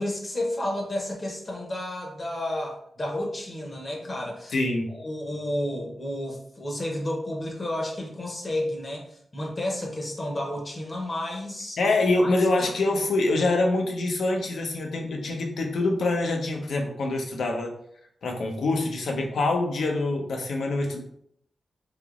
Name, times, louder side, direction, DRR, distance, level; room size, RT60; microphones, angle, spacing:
voice 1, 0.0-4.5 4.9-11.8 12.2-12.3 12.6-12.7 13.6-13.7, left 1 dB, 35° left, 0 dB, 0.7 m, -31 dB
voice 2, 4.5-5.0 11.8-17.7 18.2-21.0, left 2 dB, 85° left, 2 dB, 0.6 m, -25 dB
3.2 x 2.8 x 2.4 m, 0.68 s
wide cardioid pair, 115°, 0 cm